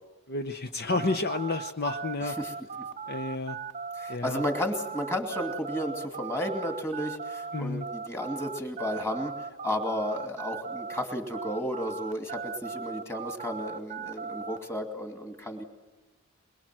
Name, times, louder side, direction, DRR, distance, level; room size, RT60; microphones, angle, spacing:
voice 1, 0.3-2.4 3.1-3.6 4.1-4.4 7.5-7.8, left 3 dB, 50° left, 7 dB, 0.8 m, -30 dB
sound 1, 0.9-11.1 11.3-14.6, right 5 dB, 35° right, 0.7 m, -38 dB
voice 2, 4.2-7.1 7.6-7.8 8.1-9.3 9.6-12.2 12.6-15.6, left 1 dB, 10° left, 4 dB, 2.6 m, -32 dB
23.0 x 22.5 x 7.7 m, 1.2 s
head